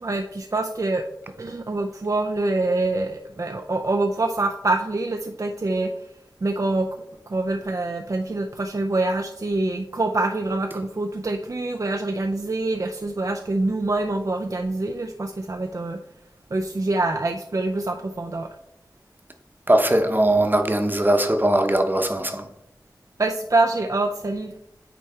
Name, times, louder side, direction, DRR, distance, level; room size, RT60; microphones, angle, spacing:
voice 1, 0.0-1.0 1.4-6.1 6.4-16.0 16.5-18.5 23.2-24.5, right 2 dB, 50° right, 0.4 m, -25 dB
voice 2, 19.7-22.4, right 1 dB, 25° right, 0.9 m, -20 dB
9.0 x 3.2 x 4.4 m
wide cardioid pair, 55°, 8 cm